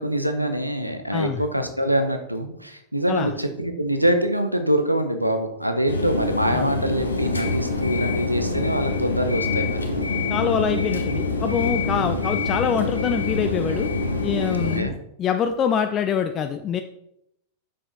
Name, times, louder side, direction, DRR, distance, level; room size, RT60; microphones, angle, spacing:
voice 1, 0.0-9.8 11.9-12.2 14.5-14.9, right 1 dB, 90° right, 7 dB, 0.9 m, -24 dB
voice 2, 1.1-1.4 3.1-3.3 6.5-6.7 10.3-13.9 14.2-16.8, left 7 dB, 30° left, 7 dB, 0.5 m, -25 dB
sound 1, 5.9-14.8, left 3 dB, 75° left, 1.1 m, -25 dB
7.6 x 6.7 x 4.0 m, 0.79 s
figure-of-eight pair, 90°, 0 cm